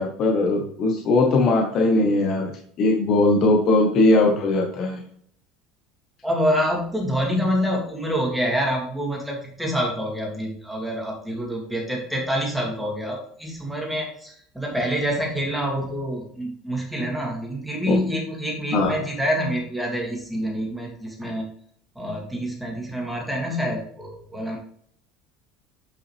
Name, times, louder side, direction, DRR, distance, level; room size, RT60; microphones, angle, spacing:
voice 1, 0.0-2.5 2.8-5.1 17.9-18.0 18.7-18.9, left 2 dB, 45° left, 2 dB, 1.0 m, -19 dB
voice 2, 6.2-21.5 22.0-24.6, equal, ahead, -2 dB, 2.3 m, -26 dB
8.3 x 5.6 x 3.3 m, 0.62 s
cardioid pair, 145°, 0 cm